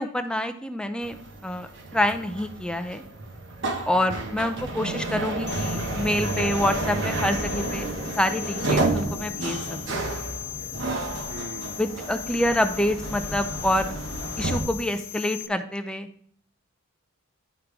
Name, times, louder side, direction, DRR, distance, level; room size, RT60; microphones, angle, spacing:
voice 1, 0.0-3.0 3.9-7.9 8.2-9.6 9.9-10.0 11.8-13.9 14.4-16.1, left 1 dB, 5° left, 7 dB, 0.4 m, -27 dB
sound 1, 1.0-14.6, right 2 dB, 55° right, 1.1 m, -31 dB
voice 2, 3.9-4.7 11.3-12.1 12.4-12.5, right 5 dB, 75° right, 13 dB, 0.5 m, -41 dB
sound 2, 5.5-15.5, left 13 dB, 75° left, 0.7 m, -38 dB
10.0 x 3.7 x 4.7 m, 0.65 s
head